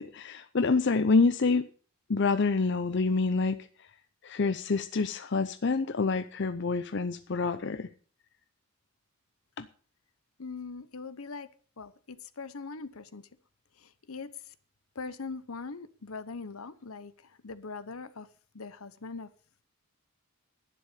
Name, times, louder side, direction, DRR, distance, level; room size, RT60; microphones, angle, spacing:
voice 1, 0.0-1.7 2.1-3.6 4.2-7.9 9.6-9.7, left 4 dB, 50° left, 11 dB, 0.6 m, -27 dB
voice 2, 10.4-11.5 11.8-13.3 13.7-14.5 14.9-18.3 18.5-19.3, left 4 dB, 75° left, 15 dB, 0.9 m, -41 dB
11.5 x 10.0 x 6.7 m, 0.42 s
head